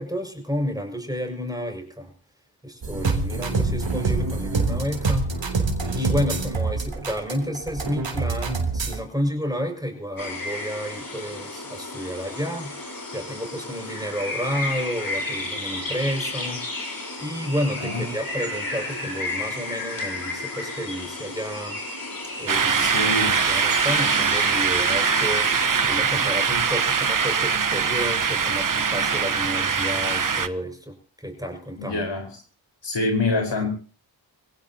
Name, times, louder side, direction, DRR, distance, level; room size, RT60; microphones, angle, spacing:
voice 1, 0.0-2.1 2.6-5.3 5.9-12.7 13.1-16.7 17.2-21.8 22.4-25.6 25.9-32.1, equal, 10° right, 3 dB, 6.3 m, -31 dB
sound 1, 2.8-9.0, right 3 dB, 70° right, 3.4 m, -26 dB
voice 2, 3.4-3.8 17.8-18.0 22.8-23.4 31.8-32.3 32.8-33.7, left 3 dB, 65° left, 2 dB, 4.8 m, -26 dB
sound 2, 10.2-25.9, left 2 dB, 45° left, 6.3 m, -33 dB
sound 3, 22.5-30.5, right 6 dB, 45° right, 1.1 m, -22 dB
24.5 x 16.5 x 3.0 m, 0.37 s
cardioid pair, 40°, 46 cm